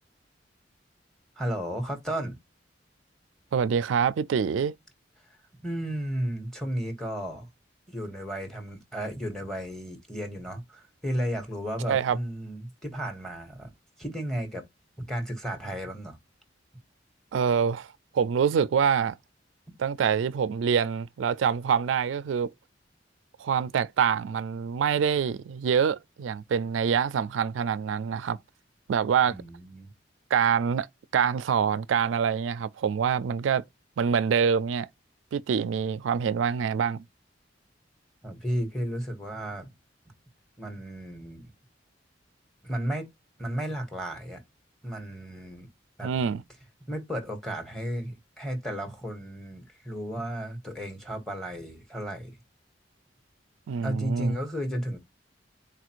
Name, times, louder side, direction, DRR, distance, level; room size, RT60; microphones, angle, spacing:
voice 1, 1.4-2.3 5.6-7.5 7.9-13.7 14.0-14.6 15.0-16.2 29.3-29.9 38.2-39.7 40.6-41.5 42.6-43.1 43.4-44.4 44.8-45.7 46.0-46.1 46.9-52.3 53.8-55.0, equal, 5° left, 1.3 m, -33 dB
voice 2, 3.5-4.7 11.9-12.2 17.3-17.9 18.1-19.2 19.8-22.5 23.4-28.4 28.9-29.4 30.3-30.9 31.1-33.6 34.0-34.9 35.3-37.0 46.0-46.4 53.7-54.4, right 7 dB, 90° right, 0.3 m, -25 dB
4.1 x 2.5 x 4.4 m
head